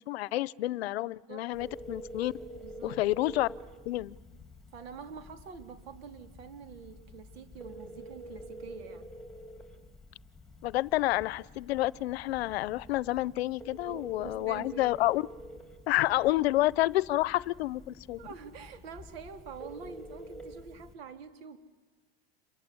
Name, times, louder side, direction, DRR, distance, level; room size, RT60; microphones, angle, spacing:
voice 1, 0.1-2.3 2.8-3.5 3.9-4.2 10.6-15.2 15.9-18.2, left 16 dB, 75° left, 22 dB, 0.8 m, -29 dB
Telephone, 1.5-20.9, equal, ahead, 2.7 m, -48 dB
voice 2, 2.6-3.0 4.7-9.1 13.9-14.9 18.2-21.6, right 6 dB, 70° right, 7 dB, 3.5 m, -46 dB
28.0 x 23.5 x 8.5 m, 1.3 s
supercardioid pair, 150°, 31 cm